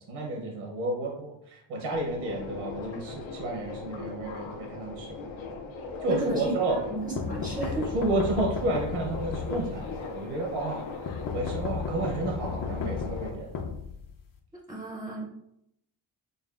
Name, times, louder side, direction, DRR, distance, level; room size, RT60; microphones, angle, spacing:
voice 1, 0.1-5.1 6.0-6.8 7.7-10.8 11.3-13.5, right 2 dB, 90° right, -1 dB, 0.9 m, -31 dB
Subway metro underground, 1.9-13.3, left 4 dB, 85° left, 0.7 m, -39 dB
voice 2, 6.1-7.8 14.7-15.3, right 2 dB, 10° right, -3 dB, 0.4 m, -34 dB
sound 1, 7.2-10.1 11.1-14.4, left 5 dB, 45° left, 0.5 m, -34 dB
5.2 x 2.2 x 2.3 m, 0.77 s
wide cardioid pair, 175°, 46 cm